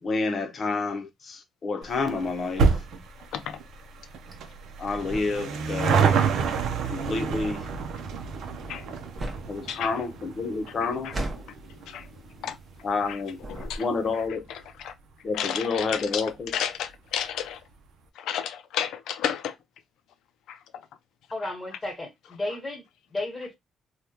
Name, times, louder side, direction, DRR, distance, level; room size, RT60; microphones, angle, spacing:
voice 1, 0.0-2.7 4.8-6.2 6.8-7.7 9.5-11.1 12.8-13.4 13.8-14.4 15.2-16.5, left 4 dB, 45° left, 0.8 m, -29 dB
sound 1, 1.8-14.6 14.9-15.0 15.8-15.9 16.1-16.2 16.5-16.6, right 5 dB, 75° right, 0.6 m, -29 dB
sound 2, 1.9-13.1 13.4-14.2, right 1 dB, 25° right, 0.9 m, -39 dB
voice 2, 8.6-10.0 10.7-11.2 11.9-12.1 12.4-12.6 13.1-13.2 13.5-13.9 14.1-14.2 14.5-14.9 15.3-17.6 18.2-19.6 20.5-20.8, left 9 dB, 85° left, 0.4 m, -33 dB
voice 3, 21.3-23.6, left 2 dB, 20° left, 1.4 m, -34 dB
3.5 x 2.3 x 2.8 m
cardioid pair, 90°, 0 cm